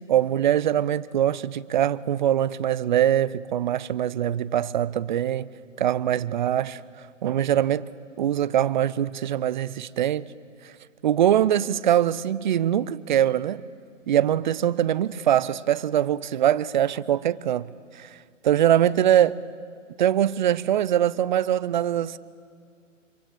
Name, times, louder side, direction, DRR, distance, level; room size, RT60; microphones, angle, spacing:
voice 1, 0.1-5.5 5.8-7.9 8.2-10.3 10.6-10.7 11.0-13.6 14.1-18.2 18.4-19.4 20.0-22.2, right 11 dB, 35° right, 0.6 m, -23 dB
26.0 x 24.0 x 8.1 m
figure-of-eight pair, 135°, 39 cm